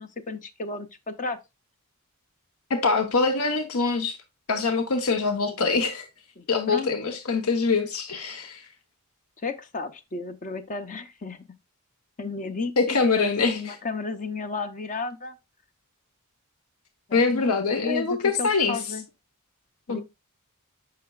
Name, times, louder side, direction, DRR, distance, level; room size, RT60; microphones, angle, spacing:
voice 1, 0.0-1.4 6.4-7.2 9.4-11.5 12.2-15.3 17.1-19.0 19.9-20.0, left 4 dB, 35° left, 0.6 m, -33 dB
voice 2, 2.7-4.2 4.5-6.1 6.5-8.7 12.8-13.8 17.1-18.8 19.9-20.0, left 4 dB, 70° left, 0.8 m, -24 dB
7.4 x 5.8 x 2.3 m
head